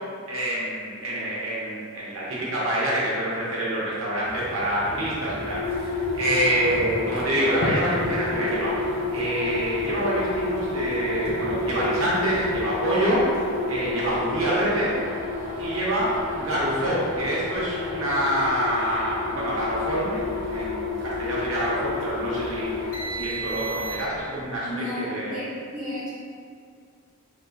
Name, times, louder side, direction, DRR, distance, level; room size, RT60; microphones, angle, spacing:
voice 1, 0.3-13.4 13.7-14.9 15.6-24.7 24.9-25.4, right 1 dB, 65° right, -7 dB, 0.9 m, -26 dB
sound 1, 4.2-12.6, left 1 dB, 45° left, 0.6 m, -37 dB
sound 2, 5.3-24.3, left 3 dB, 65° left, 0.9 m, -30 dB
voice 2, 24.6-26.1, left 1 dB, 10° right, -13 dB, 0.6 m, -33 dB
3.6 x 2.4 x 2.6 m, 2.2 s
head